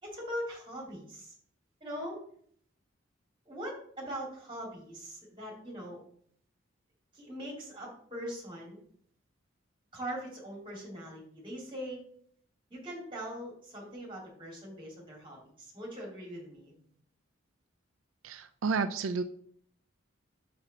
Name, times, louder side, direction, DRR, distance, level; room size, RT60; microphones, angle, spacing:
voice 1, 0.0-1.3 1.8-2.2 3.5-6.0 7.1-8.8 9.9-12.0 12.7-16.7, equal, 25° right, -1 dB, 2.4 m, -41 dB
voice 2, 18.2-19.2, right 4 dB, 80° right, 10 dB, 0.4 m, -31 dB
5.9 x 5.5 x 4.0 m, 0.62 s
head